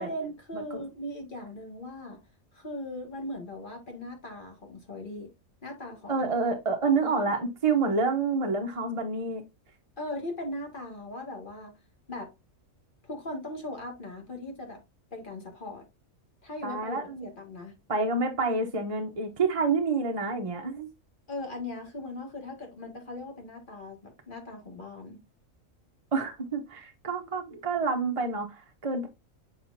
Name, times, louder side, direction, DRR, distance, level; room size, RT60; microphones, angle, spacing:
voice 1, 0.0-2.2 2.5-5.3 5.6-6.3 7.1-7.4 10.0-11.7 12.1-12.3 13.0-14.8 15.1-15.8 16.4-17.7 21.3-25.2, left 1 dB, 40° left, 2.1 m, -39 dB
voice 2, 0.5-0.8 6.1-9.4 16.6-17.3 17.9-20.9 26.1-29.1, right 4 dB, 30° right, 0.8 m, -28 dB
7.5 x 4.9 x 2.6 m
omnidirectional pair, 1.4 m